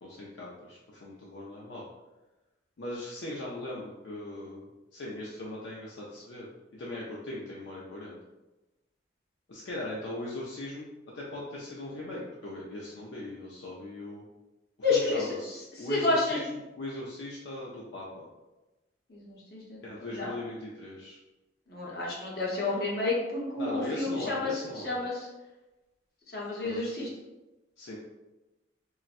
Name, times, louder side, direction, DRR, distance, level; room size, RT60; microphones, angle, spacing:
voice 1, 0.0-1.8 2.8-8.2 9.5-14.2 14.8-18.2 19.8-21.2 23.6-25.0 26.6-27.1 27.8-28.0, left 1 dB, 75° left, -5 dB, 0.5 m, -39 dB
voice 2, 14.8-15.2 15.9-16.4 19.1-19.8 20.1-20.3 21.7-24.5 24.8-25.3 26.3-27.1, left 3 dB, 55° left, -5 dB, 0.8 m, -30 dB
3.9 x 2.1 x 2.5 m, 1.1 s
head